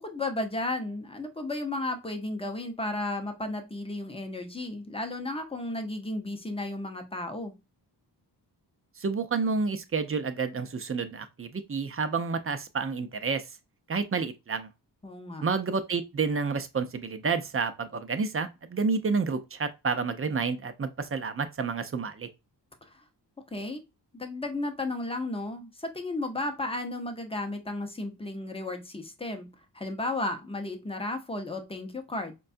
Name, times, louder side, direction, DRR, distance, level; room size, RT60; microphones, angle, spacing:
voice 1, 0.0-7.5 15.0-15.4 22.8-23.0 23.5-23.8 24.1-29.5 29.7-32.3, left 2 dB, 15° left, 0.6 m, -34 dB
voice 2, 9.0-13.4 13.9-14.7 15.4-22.3, right 4 dB, 35° right, 0.5 m, -29 dB
4.6 x 2.2 x 2.5 m
wide cardioid pair, 95°, 42 cm